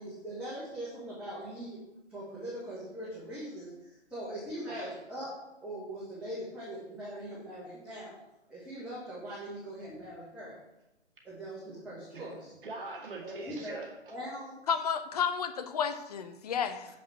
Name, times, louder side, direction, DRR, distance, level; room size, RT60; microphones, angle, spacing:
voice 1, 0.0-1.8 2.1-5.3 5.6-8.2 8.5-10.6 11.2-12.5 13.2-13.8 14.1-14.5, right 1 dB, 5° right, -10 dB, 1.6 m, -41 dB
voice 2, 12.1-14.1, right 3 dB, 50° right, -1 dB, 2.1 m, -43 dB
voice 3, 14.7-16.9, left 7 dB, 35° left, 9 dB, 0.6 m, -31 dB
7.3 x 5.2 x 5.9 m, 0.91 s
hypercardioid pair, 150°, 35 cm